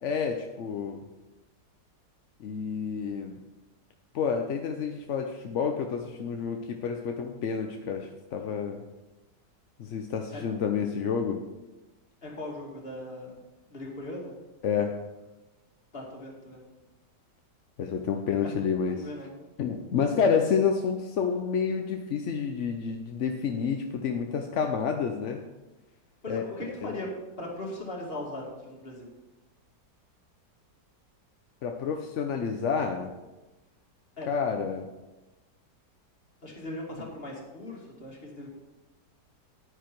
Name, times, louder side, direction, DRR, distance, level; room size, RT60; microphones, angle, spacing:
voice 1, 0.0-1.0 2.4-3.4 4.1-8.8 9.8-11.4 14.6-15.0 17.8-19.1 19.6-25.4 26.3-26.4 26.8-26.9 31.6-33.1 34.3-34.9, left 6 dB, 55° left, 4 dB, 0.8 m, -29 dB
voice 2, 12.2-13.4 13.7-14.4 15.9-16.6 18.4-18.5 18.9-19.3 26.2-27.1 27.4-29.1 34.2-34.3 36.4-38.5, left 1 dB, 35° left, -2 dB, 2.5 m, -39 dB
10.0 x 9.5 x 4.5 m, 1.1 s
omnidirectional pair, 1.9 m